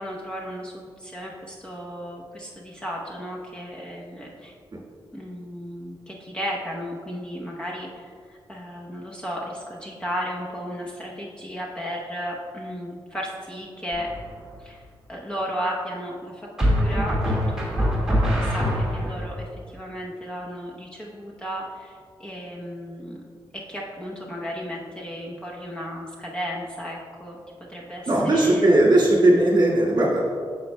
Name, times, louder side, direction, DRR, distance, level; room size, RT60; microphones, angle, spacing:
voice 1, 0.0-4.5 5.1-14.1 14.6-23.2 23.7-27.4 27.7-28.8, equal, 10° left, -4 dB, 0.8 m, -34 dB
sound 1, 13.9-14.4 16.6-19.2, equal, 5° right, 1.8 m, -23 dB
voice 2, 28.1-30.3, right 1 dB, 45° right, -5 dB, 1.9 m, -18 dB
9.6 x 7.0 x 2.2 m, 2.1 s
wide cardioid pair, 150°, 9 cm